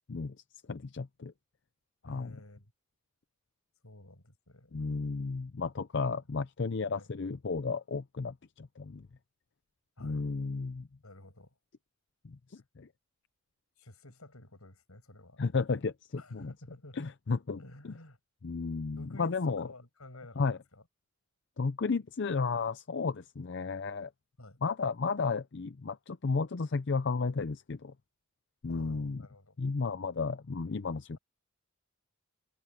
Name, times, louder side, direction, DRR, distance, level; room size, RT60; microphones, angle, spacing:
voice 1, 0.7-1.3 2.0-2.4 4.7-9.1 10.0-10.9 12.2-12.9 15.4-16.5 17.0-17.9 18.4-19.7 20.4-20.6 21.6-24.1 24.6-27.9 28.6-29.2 29.6-31.2, left 4 dB, 55° left, 0.5 m, -33 dB
voice 2, 2.1-2.7 3.8-4.8 7.0-7.1 10.0-10.3 11.0-11.5 13.8-15.4 16.1-17.1 17.6-18.2 18.9-20.8 24.4-24.6 28.7-29.6, left 1 dB, 80° left, 6.5 m, -51 dB
head